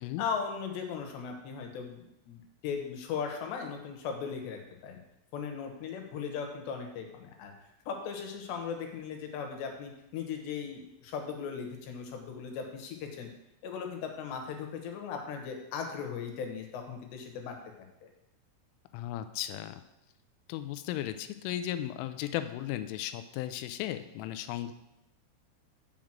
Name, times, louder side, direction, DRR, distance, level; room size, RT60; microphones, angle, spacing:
voice 1, 0.2-5.0 5.3-7.5 7.9-13.3 13.6-17.5 18.0-18.1, left 6 dB, 70° left, 3 dB, 3.0 m, -38 dB
voice 2, 18.9-19.8 20.5-24.7, left 12 dB, 90° left, 10 dB, 3.2 m, -35 dB
7.7 x 5.1 x 7.4 m, 0.88 s
omnidirectional pair, 5.7 m